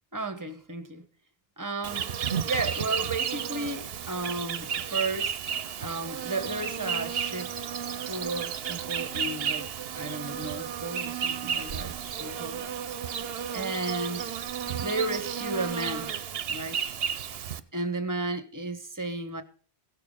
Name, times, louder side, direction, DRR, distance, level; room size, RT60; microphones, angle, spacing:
voice 1, 0.1-1.0 1.6-2.1 2.4-5.4 5.8-7.5 8.1-12.6 13.5-14.3 14.8-16.1 16.5-16.8 17.7-19.4, right 2 dB, 20° right, 1.0 m, -33 dB
Insect, 1.8-17.6, right 8 dB, 65° right, 0.9 m, -33 dB
16.5 x 6.8 x 5.2 m
omnidirectional pair, 1.1 m